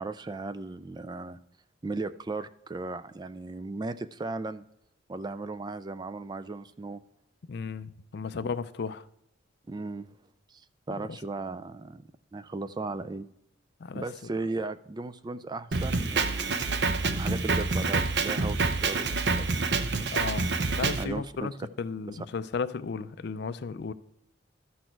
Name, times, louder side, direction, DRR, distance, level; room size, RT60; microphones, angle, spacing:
voice 1, 0.0-1.4 1.8-4.6 5.1-7.0 8.4-8.6 9.7-10.1 10.5-12.0 12.3-13.3 13.9-16.6 17.1-19.7 21.0-21.5 22.1-22.3, right 3 dB, 20° right, 0.3 m, -36 dB
voice 2, 7.5-9.0 13.8-14.1 20.1-21.5 21.8-23.9, left 5 dB, 55° left, 0.4 m, -34 dB
Drum kit, 15.7-21.0, right 3 dB, 60° right, 0.7 m, -27 dB
12.5 x 6.4 x 4.5 m
head